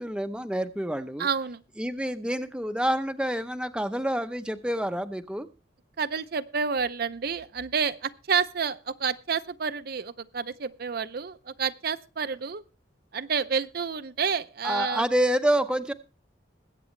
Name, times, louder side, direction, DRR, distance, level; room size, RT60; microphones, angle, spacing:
voice 1, 0.0-1.3 1.8-5.5 14.6-15.9, right 1 dB, 5° right, 9 dB, 0.7 m, -27 dB
voice 2, 1.2-1.6 6.0-12.6 13.1-15.1, right 6 dB, 55° right, 12 dB, 0.6 m, -29 dB
21.0 x 8.3 x 3.2 m, 0.31 s
head